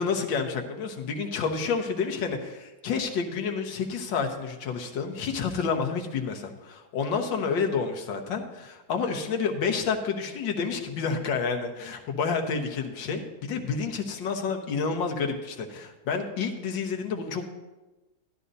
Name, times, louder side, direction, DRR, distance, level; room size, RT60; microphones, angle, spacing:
voice 1, 0.0-17.4, left 5 dB, 80° left, 3 dB, 1.6 m, -29 dB
12.5 x 11.0 x 2.7 m, 1.1 s
omnidirectional pair, 2.0 m